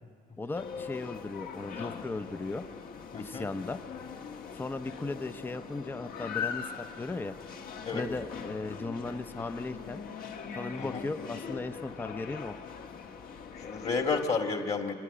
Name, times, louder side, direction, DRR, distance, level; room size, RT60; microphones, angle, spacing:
voice 1, 0.4-2.7 3.2-3.8 4.5-7.3 7.9-10.0 10.6-12.6, left 3 dB, 10° left, 11 dB, 0.6 m, -37 dB
sound 1, 0.5-14.2, left 6 dB, 60° left, 1.4 m, -41 dB
voice 2, 3.1-3.5 7.9-8.1 10.8-11.0 13.6-14.9, left 4 dB, 40° left, 4 dB, 2.0 m, -31 dB
26.0 x 10.5 x 9.8 m, 2.2 s
cardioid pair, 110°, 17 cm